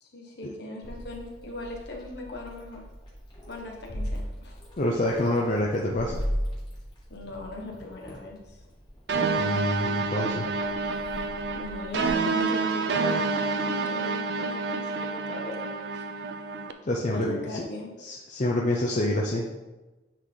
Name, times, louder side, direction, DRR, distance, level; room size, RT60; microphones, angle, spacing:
voice 1, 0.0-2.8 3.5-4.6 7.1-8.6 11.5-15.6 15.9-16.0 17.1-17.9, left 2 dB, 60° left, 0 dB, 1.4 m, -39 dB
Meow, 0.8-12.1, equal, 25° left, 1.8 m, -38 dB
voice 2, 4.8-6.2 9.4-10.4 16.9-17.6 18.0-19.4, left 1 dB, 40° left, -1 dB, 0.6 m, -27 dB
sound 1, 9.1-16.7, right 4 dB, 60° right, 0.5 m, -28 dB
9.0 x 3.9 x 3.9 m, 1.1 s
head